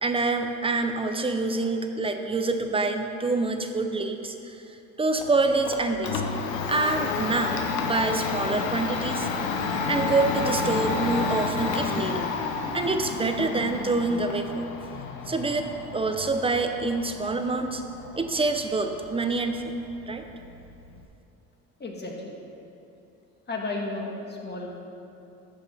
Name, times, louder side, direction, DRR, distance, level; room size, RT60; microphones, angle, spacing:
voice 1, 0.0-4.6 5.0-6.2 6.7-9.3 9.9-12.3 12.7-14.7 15.3-17.8 18.2-19.6 20.1-20.2, right 3 dB, 15° right, 6 dB, 0.7 m, -26 dB
Domestic sounds home sounds, 5.2-21.0, left 4 dB, 85° left, 0.8 m, -31 dB
voice 2, 21.8-22.4 23.5-24.7, left 2 dB, 30° left, 0 dB, 1.6 m, -33 dB
11.0 x 6.2 x 3.5 m, 2.9 s
supercardioid pair, 80°, 32 cm